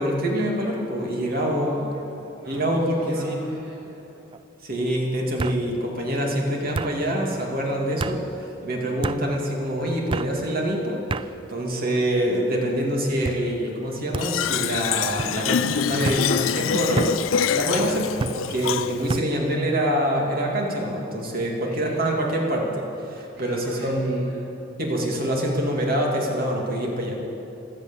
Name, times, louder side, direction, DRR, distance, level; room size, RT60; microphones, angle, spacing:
voice 1, 0.0-1.7 2.4-3.4 4.6-17.3 17.5-24.3 24.8-27.2, equal, 50° right, -1 dB, 2.8 m, -25 dB
voice 2, 1.3-4.2 21.6-22.4 23.3-24.4, equal, 80° right, -11 dB, 4.9 m, -43 dB
sound 1, 1.9-2.3 2.7-3.3 4.3-4.4 5.4-5.6 6.7-6.9 8.0-8.2 9.0-9.2 10.1-10.3 11.1-11.3 12.0-12.5 13.2-13.4 14.1-14.3 15.2-15.4 16.0-16.3 17.0-17.2 18.2-18.4 19.1-19.3, right 3 dB, 25° right, 0.3 m, -29 dB
Fill (with liquid), 14.2-19.2, left 8 dB, 85° left, 0.4 m, -25 dB
15.5 x 13.0 x 7.3 m, 2.8 s
head